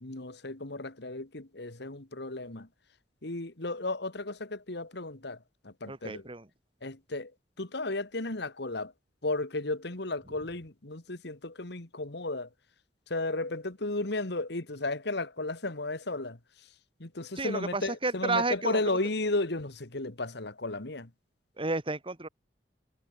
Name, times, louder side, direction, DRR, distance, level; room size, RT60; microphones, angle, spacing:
voice 1, 0.0-2.7 3.2-6.3 6.8-7.3 7.6-8.9 9.2-12.5 13.1-16.7 17.0-21.1, left 2 dB, 65° left, 2.1 m, -34 dB
voice 2, 5.9-6.5 17.4-18.8 21.6-22.3, right 3 dB, 30° right, 2.2 m, -31 dB
head